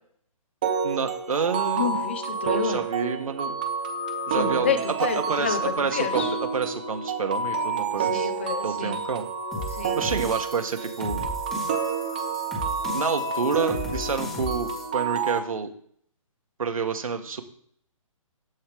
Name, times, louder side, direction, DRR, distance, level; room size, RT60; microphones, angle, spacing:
sound 1, 0.6-15.4, right 5 dB, 15° right, 0.7 m, -29 dB
voice 1, 0.8-1.9 2.6-3.5 4.3-4.7 5.1-8.3 8.6-9.3 9.9-11.2 12.9-15.7 16.6-17.4, right 5 dB, 75° right, 5 dB, 2.0 m, -28 dB
voice 2, 1.8-2.8 4.3-5.6 5.9-6.3 8.0-9.0 9.7-10.0, left 7 dB, 20° left, 9 dB, 0.7 m, -29 dB
sound 2, 9.5-14.8, left 2 dB, 5° left, 1.3 m, -36 dB
14.0 x 5.5 x 3.4 m, 0.63 s
hypercardioid pair, 180°, 18 cm